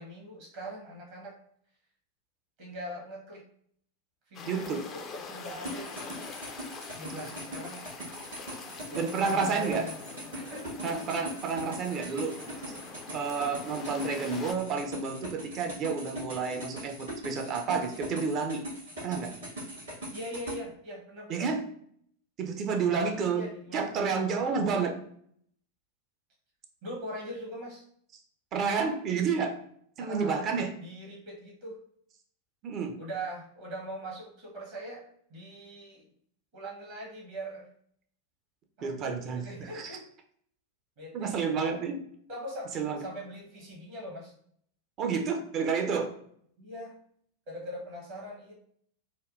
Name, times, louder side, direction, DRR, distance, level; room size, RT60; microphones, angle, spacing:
voice 1, 0.0-1.4 2.6-3.4 4.3-6.3 6.9-8.1 8.9-10.0 10.3-10.7 20.1-21.5 22.8-24.2 26.8-27.8 30.0-30.4 30.8-31.8 33.0-36.1 36.5-37.7 38.8-40.1 41.0-41.6 42.3-44.3 46.6-47.0 47.5-48.5, equal, 50° right, -3 dB, 1.1 m, -42 dB
sound 1, 4.3-14.5, left 5 dB, 30° left, 0.4 m, -44 dB
voice 2, 4.5-4.9 7.1-7.2 8.9-9.9 10.8-12.4 13.1-18.6 19.0-19.3 21.3-21.6 22.4-23.4 23.7-24.9 28.5-29.6 30.0-30.7 32.6-33.0 38.8-39.4 39.7-39.9 41.1-42.0 42.7-43.0 45.0-46.1, right 5 dB, 35° right, 4 dB, 0.5 m, -30 dB
sound 2, 5.6-20.6, equal, 70° right, 1.5 m, -41 dB
3.4 x 2.2 x 2.4 m, 0.64 s
figure-of-eight pair, 90°, 0 cm